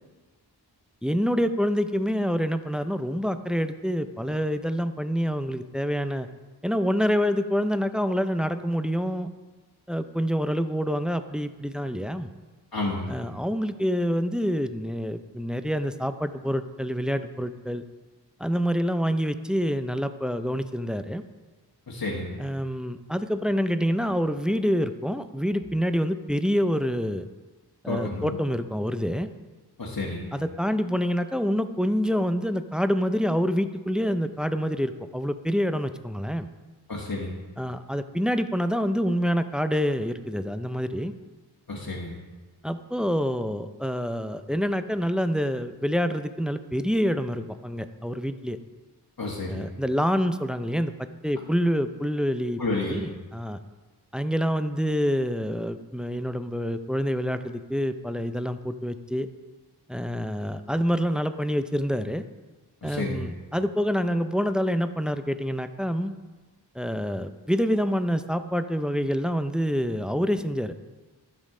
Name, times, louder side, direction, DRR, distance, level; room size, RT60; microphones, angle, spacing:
voice 1, 1.0-6.3 6.6-9.3 9.9-12.3 13.1-17.8 18.4-21.2 22.4-27.3 27.8-29.3 30.3-36.5 37.6-41.1 42.6-48.6 49.5-52.6 52.9-53.6 54.1-59.3 59.9-62.2 62.8-66.1 66.7-70.8, equal, ahead, 10 dB, 0.4 m, -27 dB
voice 2, 12.7-13.2 21.9-22.4 27.9-28.4 29.8-30.3 36.9-37.4 41.7-42.2 49.2-49.7 52.6-53.1 62.8-63.3, left 2 dB, 60° left, -3 dB, 1.4 m, -31 dB
12.0 x 7.4 x 3.7 m, 1.3 s
wide cardioid pair, 50°, 41 cm